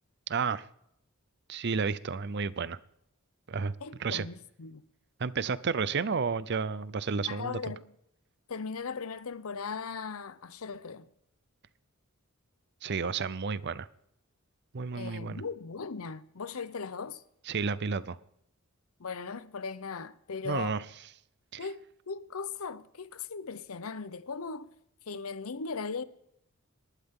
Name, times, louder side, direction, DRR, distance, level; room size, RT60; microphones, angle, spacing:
voice 1, 0.3-0.7 1.5-2.8 3.5-3.7 4.0-4.3 5.2-7.6 12.8-13.9 14.7-15.4 17.5-18.2 20.4-20.8 21.5-21.7, right 5 dB, 55° right, 0.6 m, -31 dB
voice 2, 3.8-4.8 7.3-7.9 8.5-11.1 14.9-17.2 19.0-20.8 21.6-24.7 25.1-26.0, left 5 dB, 80° left, 0.7 m, -38 dB
27.5 x 12.0 x 3.7 m
head